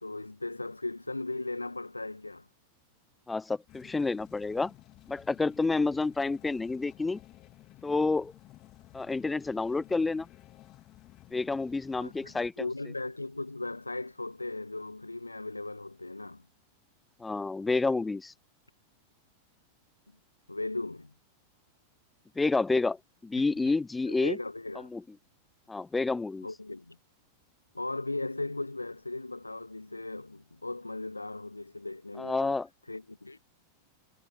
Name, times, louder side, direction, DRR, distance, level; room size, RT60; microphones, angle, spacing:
voice 1, 0.0-2.5 12.0-16.4 20.5-21.1 24.1-24.9 26.4-27.0 27.7-32.6 32.9-33.4, left 2 dB, 85° left, 1.7 m, -37 dB
voice 2, 3.3-4.7 5.1-7.2 7.8-8.3 8.9-10.3 11.3-12.7 17.2-18.3 22.4-23.0 23.2-24.4 24.9-25.0 25.7-26.5 32.2-32.7, left 3 dB, 10° left, 0.6 m, -29 dB
sound 1, 3.7-12.5, left 16 dB, 35° left, 2.8 m, -54 dB
figure-of-eight pair, 90°, 0 cm